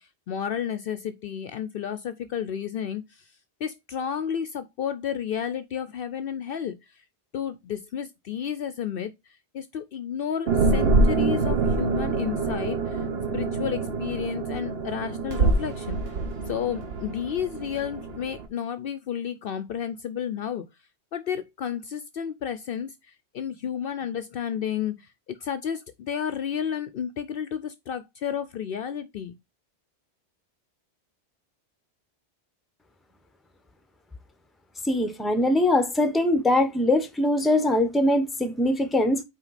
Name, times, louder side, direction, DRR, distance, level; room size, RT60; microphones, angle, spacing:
voice 1, 0.0-3.3 3.6-7.0 7.3-9.1 9.5-13.1 13.3-16.0 16.5-20.7 21.1-29.3, left 8 dB, 65° left, 0.7 m, -32 dB
sound 1, 10.5-18.5, right 3 dB, 60° right, 1.2 m, -25 dB
voice 2, 34.8-39.2, left 1 dB, ahead, 0.7 m, -22 dB
5.9 x 4.5 x 4.1 m
omnidirectional pair, 1.1 m